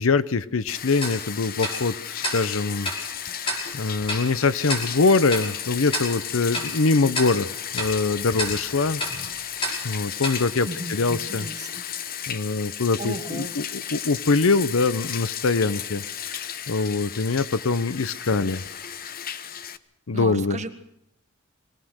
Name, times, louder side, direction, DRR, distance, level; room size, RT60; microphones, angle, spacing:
voice 1, 0.0-2.9 3.7-9.0 9.8-11.5 12.3-18.6 20.1-20.6, left 3 dB, 80° left, 15 dB, 0.8 m, -23 dB
Bathtub (filling or washing), 0.7-19.8, left 9 dB, 45° left, 0.8 m, -34 dB
Tick-tock, 1.0-11.5, left 1 dB, 25° left, 5.7 m, -33 dB
voice 2, 10.6-11.8 13.0-13.5 20.1-20.7, right 2 dB, 35° right, 7 dB, 1.6 m, -34 dB
22.5 x 18.5 x 6.4 m, 0.75 s
head